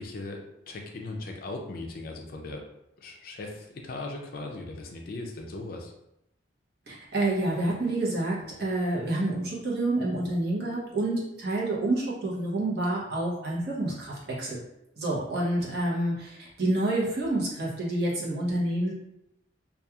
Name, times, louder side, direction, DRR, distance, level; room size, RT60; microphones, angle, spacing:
voice 1, 0.0-2.6 3.0-5.9, left 2 dB, 45° left, 2 dB, 0.4 m, -38 dB
voice 2, 6.9-14.6 15.0-18.9, right 1 dB, 55° right, -5 dB, 0.8 m, -28 dB
2.9 x 2.3 x 2.3 m, 0.83 s
head